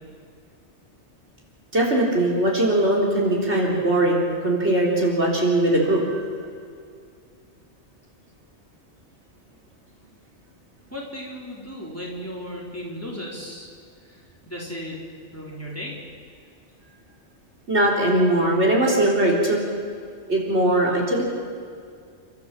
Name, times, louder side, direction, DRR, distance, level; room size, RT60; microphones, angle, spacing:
voice 1, 1.7-6.3 17.7-19.6 20.3-21.3, right 1 dB, 70° right, -2 dB, 4.2 m, -20 dB
voice 2, 10.9-13.7 14.1-15.0 15.3-16.0, equal, 10° left, -3 dB, 3.9 m, -35 dB
30.0 x 13.0 x 7.4 m, 2.2 s
omnidirectional pair, 1.2 m